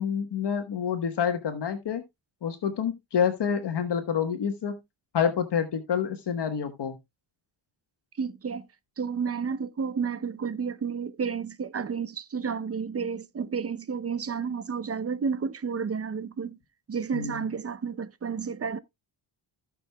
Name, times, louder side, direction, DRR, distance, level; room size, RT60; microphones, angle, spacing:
voice 1, 0.0-2.0 2.4-4.8 5.1-7.0 17.1-17.5, left 7 dB, 60° left, 1.2 m, -28 dB
voice 2, 8.2-8.7 9.0-16.6 16.9-18.8, right 6 dB, 30° right, 0.6 m, -31 dB
15.5 x 6.3 x 2.2 m
wide cardioid pair, 130°, 47 cm